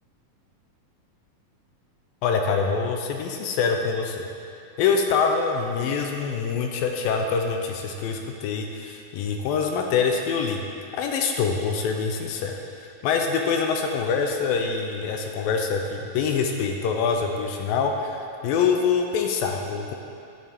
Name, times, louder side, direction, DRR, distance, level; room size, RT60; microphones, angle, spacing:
voice 1, 2.2-4.3 4.8-10.6 10.9-12.5 12.8-19.9, left 5 dB, 80° left, 3 dB, 2.3 m, -25 dB
10.5 x 10.0 x 3.5 m, 2.5 s
omnidirectional pair, 4.3 m